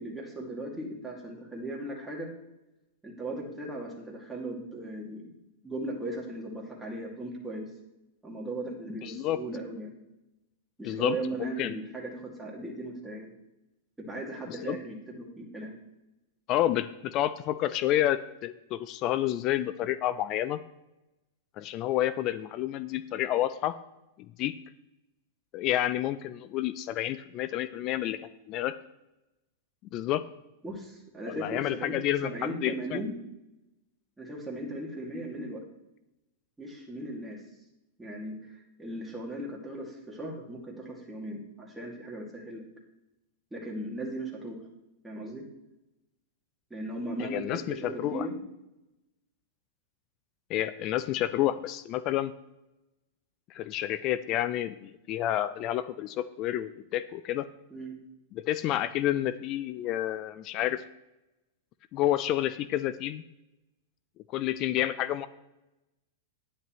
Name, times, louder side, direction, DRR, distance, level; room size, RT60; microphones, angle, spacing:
voice 1, 0.0-2.3 3.0-5.3 5.6-7.6 8.2-9.9 10.8-13.3 14.0-15.8 30.6-32.0 32.2-33.2 34.2-35.6 36.6-37.4 38.0-42.6 43.5-44.6 45.0-45.4 46.7-48.4 57.7-57.9, right 1 dB, 10° right, -2 dB, 2.2 m, -37 dB
voice 2, 9.0-9.4 10.8-11.7 14.6-14.8 16.5-20.6 21.6-23.7 24.4-24.5 25.5-28.2 28.5-28.7 29.9-30.2 31.3-33.0 47.3-48.3 50.5-52.3 53.5-57.5 58.3-60.8 61.9-63.2 64.3-65.3, left 13 dB, 40° left, 14 dB, 0.4 m, -29 dB
9.8 x 9.4 x 3.1 m, 0.95 s
hypercardioid pair, 125°, 0 cm